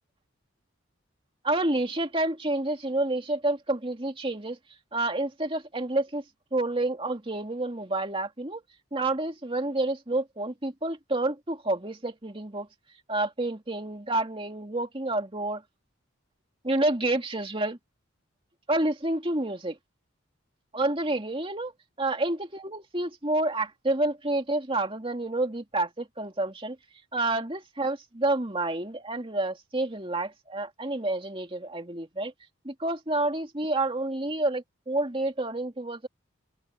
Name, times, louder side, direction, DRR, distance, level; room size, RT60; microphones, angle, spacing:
voice 1, 1.4-4.6 4.9-6.2 6.5-8.6 8.9-12.7 13.1-15.6 16.6-17.8 18.7-19.8 20.7-21.7 22.0-26.8 27.1-32.3 32.6-36.1, right 2 dB, 25° right, 2.5 m, -29 dB
head